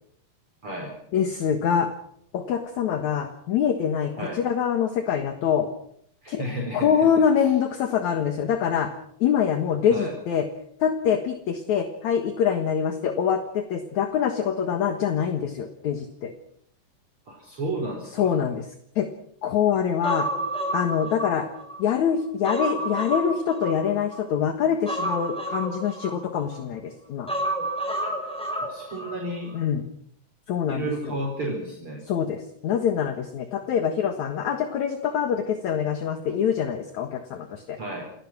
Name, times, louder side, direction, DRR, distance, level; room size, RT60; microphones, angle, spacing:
voice 1, 0.6-0.9 4.2-4.4 6.2-7.2 9.9-10.1 17.3-18.3 28.6-29.5 30.7-32.0 37.8-38.0, right 1 dB, 35° right, -2 dB, 5.4 m, -32 dB
voice 2, 1.1-1.9 2.3-5.7 6.3-6.4 6.7-8.9 9.2-10.5 10.8-16.3 18.2-18.7 19.0-19.1 19.4-20.3 20.7-21.5 21.8-27.3 29.5-29.9 30.5-31.1 32.1-37.8, left 8 dB, 60° left, 7 dB, 2.7 m, -25 dB
Human voice, 20.0-21.8 22.2-24.2 24.9-26.6 27.3-29.2 29.5-29.6, right 1 dB, ahead, 6.2 m, -30 dB
29.0 x 18.0 x 6.1 m, 0.67 s
omnidirectional pair, 4.0 m